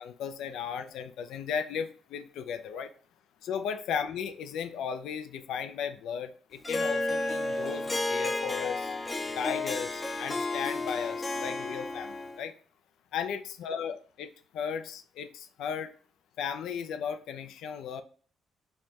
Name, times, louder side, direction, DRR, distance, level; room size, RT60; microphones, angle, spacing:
voice 1, 0.0-2.9 3.4-9.1 9.3-12.5 13.1-15.9 16.4-18.0, left 7 dB, 85° left, 0.3 m, -35 dB
Harp, 6.6-12.5, left 2 dB, 25° left, 0.5 m, -32 dB
3.1 x 2.2 x 4.2 m
cardioid pair, 90°, 0 cm